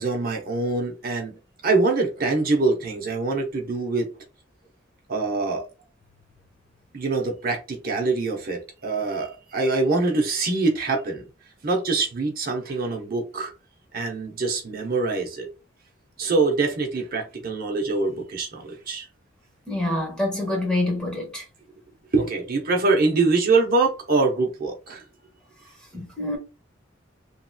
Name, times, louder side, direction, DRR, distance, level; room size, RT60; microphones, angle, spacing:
voice 1, 0.0-1.4 1.6-4.1 5.1-5.7 6.9-11.2 11.6-13.5 13.9-15.5 16.2-19.1 22.1-25.0, right 3 dB, 50° right, 0.7 m, -24 dB
voice 2, 19.7-21.4 25.9-26.4, left 1 dB, 5° left, 1.0 m, -26 dB
3.0 x 2.9 x 2.2 m
head